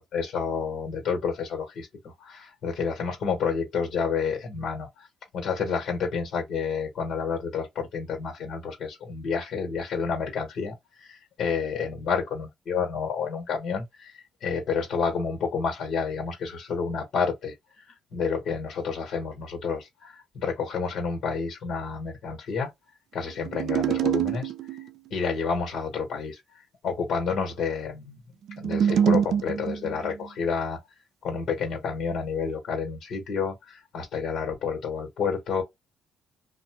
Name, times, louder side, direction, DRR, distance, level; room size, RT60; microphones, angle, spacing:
voice 1, 0.1-5.1 5.3-22.7 23.1-24.5 25.1-28.2 28.6-30.8 31.2-35.6, left 5 dB, 65° left, 1.4 m, -30 dB
sound 1, 23.5-24.9 28.5-30.3, right 9 dB, 75° right, 0.4 m, -25 dB
2.5 x 2.2 x 2.9 m
cardioid pair, 90°, 0 cm